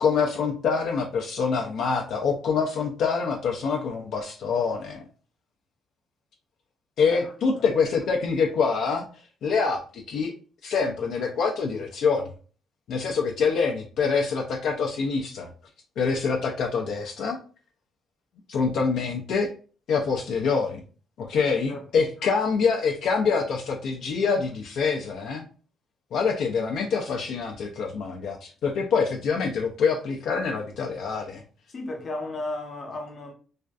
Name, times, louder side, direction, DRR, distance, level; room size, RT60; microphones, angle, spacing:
voice 1, 0.0-5.0 7.0-9.0 9.4-10.3 10.6-12.3 12.9-15.5 16.0-17.4 18.5-19.5 19.9-20.8 21.2-25.5 26.1-31.4, left 5 dB, 75° left, 0.4 m, -25 dB
voice 2, 7.1-7.7 21.7-22.0 31.7-33.3, left 2 dB, 45° left, 0.7 m, -35 dB
2.4 x 2.2 x 2.3 m
cardioid pair, 90°, 0 cm